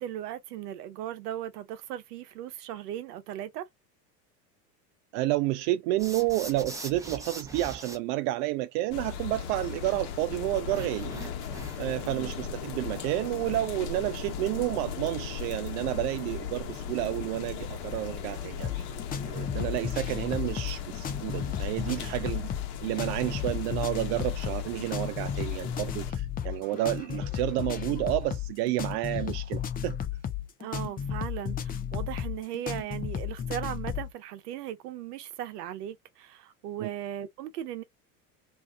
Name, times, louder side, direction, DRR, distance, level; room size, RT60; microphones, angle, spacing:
voice 1, 0.0-3.7 11.1-11.3 12.0-12.3 30.6-37.8, right 11 dB, 75° right, 0.9 m, -37 dB
voice 2, 5.1-11.1 11.8-18.8 19.2-22.5 22.8-30.0 36.8-36.9, right 16 dB, 55° right, 0.5 m, -30 dB
sound 1, 6.0-8.0 10.7-12.0, right 2 dB, 5° right, 0.8 m, -42 dB
sound 2, 8.9-26.1, left 7 dB, 50° left, 1.0 m, -38 dB
sound 3, 18.6-34.1, left 8 dB, 20° left, 0.5 m, -34 dB
2.7 x 2.4 x 3.3 m
hypercardioid pair, 95°, 48 cm